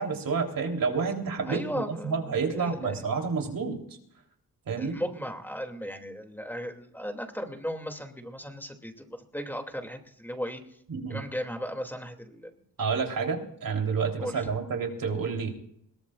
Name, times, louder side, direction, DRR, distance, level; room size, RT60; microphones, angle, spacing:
voice 1, 0.0-3.8 4.7-5.0 10.9-11.2 12.8-15.5, right 5 dB, 70° right, 2 dB, 3.7 m, -29 dB
voice 2, 1.5-3.0 4.8-10.6 11.1-12.6 14.2-14.5, equal, 5° left, 4 dB, 2.7 m, -36 dB
22.0 x 17.5 x 2.5 m, 0.69 s
cardioid pair, 70°, 35 cm